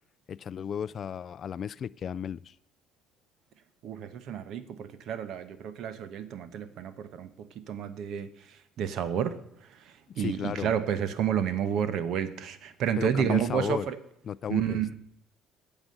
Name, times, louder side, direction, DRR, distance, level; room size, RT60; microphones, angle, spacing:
voice 1, 0.3-2.6 10.1-10.7 13.0-13.9 14.3-15.0, left 8 dB, 40° left, 19 dB, 0.3 m, -34 dB
voice 2, 3.8-14.0 14.5-14.8, right 8 dB, 60° right, 13 dB, 1.1 m, -31 dB
9.8 x 7.2 x 7.8 m, 0.79 s
cardioid pair, 115°, 0 cm